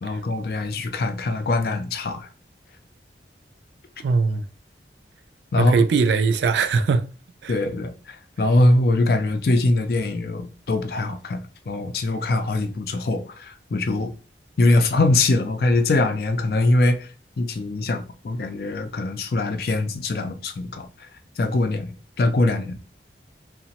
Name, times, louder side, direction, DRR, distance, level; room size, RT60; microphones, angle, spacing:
voice 1, 0.0-2.3 5.5-5.8 7.5-14.1 14.6-17.1 17.4-20.9 21.4-22.8, left 2 dB, 55° left, 0.4 m, -22 dB
voice 2, 4.0-4.5 5.6-7.1 7.4-7.6, right 4 dB, 70° right, 0.3 m, -20 dB
2.9 x 2.1 x 2.8 m
head